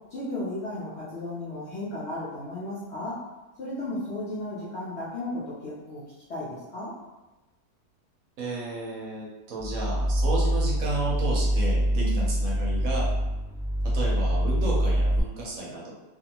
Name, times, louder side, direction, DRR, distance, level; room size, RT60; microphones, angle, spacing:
voice 1, 0.1-3.2 3.6-6.0 6.3-6.9 11.9-12.3, left 1 dB, 55° left, -8 dB, 0.8 m, -34 dB
voice 2, 8.4-13.1 13.8-15.9, right 2 dB, 65° right, -4 dB, 1.0 m, -32 dB
sound 1, 9.6-15.2, equal, 20° left, 0.9 m, -25 dB
2.8 x 2.5 x 2.8 m, 1.1 s
omnidirectional pair, 1.7 m